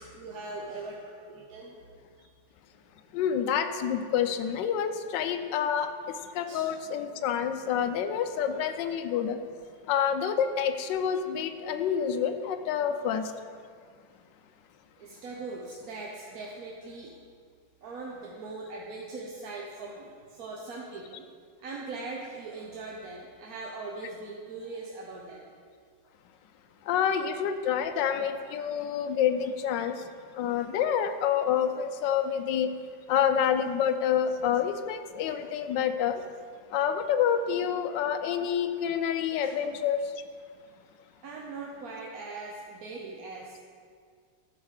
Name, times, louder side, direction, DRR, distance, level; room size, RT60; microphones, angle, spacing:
voice 1, 0.0-1.8 2.2-2.3 6.5-6.7 15.0-17.1 17.8-21.3 21.6-25.4 39.4-39.5 40.6-40.7 41.2-43.6, right 3 dB, 55° right, -2 dB, 1.2 m, -40 dB
voice 2, 3.1-5.9 6.3-9.4 9.9-13.3 26.8-32.7 33.1-36.2 36.7-40.1, left 8 dB, 70° left, 8 dB, 1.3 m, -28 dB
12.5 x 4.8 x 6.5 m, 2.1 s
omnidirectional pair, 2.1 m